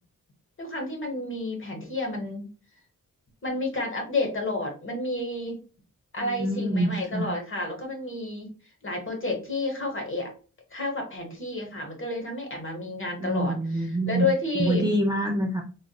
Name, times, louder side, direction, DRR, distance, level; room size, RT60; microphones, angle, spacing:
voice 1, 0.6-2.4 3.4-5.6 6.1-8.5 8.8-10.3 10.7-13.5 14.1-14.9, left 2 dB, 35° left, 1 dB, 1.0 m, -30 dB
voice 2, 6.2-7.3 13.2-14.3 14.5-15.6, right 1 dB, 10° right, 3 dB, 0.4 m, -26 dB
3.9 x 2.4 x 2.2 m, 0.37 s
wide cardioid pair, 145°, 34 cm